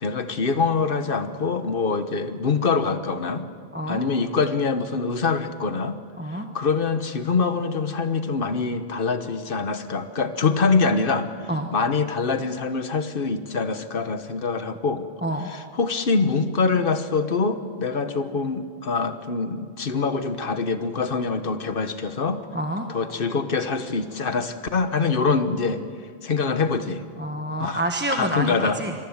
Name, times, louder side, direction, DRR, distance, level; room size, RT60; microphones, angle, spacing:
voice 1, 0.0-3.5 3.9-5.9 6.3-11.3 11.7-15.1 15.5-22.4 22.9-25.8 26.2-27.0 27.6-27.8 28.1-28.8, left 4 dB, 55° left, 9 dB, 1.4 m, -24 dB
voice 2, 3.7-4.0 6.2-6.5 11.5-11.7 15.2-15.5 22.5-22.9 27.2-28.9, right 1 dB, 10° right, 3 dB, 1.3 m, -27 dB
26.5 x 22.0 x 7.3 m, 2.1 s
omnidirectional pair, 1.1 m